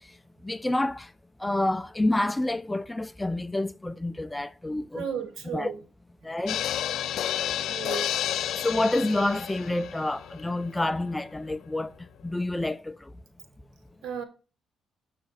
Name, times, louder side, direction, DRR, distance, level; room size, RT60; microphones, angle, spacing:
voice 1, 0.4-1.1 1.4-5.0 5.5-5.7 6.2-6.6 8.6-11.9 12.2-13.0, left 2 dB, 10° left, 0.4 m, -28 dB
voice 2, 4.9-5.8 7.6-8.2 14.0-14.2, right 7 dB, 70° right, 1.6 m, -34 dB
sound 1, 6.5-11.6 11.8-11.9 12.2-12.3, left 11 dB, 75° left, 0.3 m, -31 dB
7.8 x 5.8 x 4.1 m
cardioid pair, 90°, 0 cm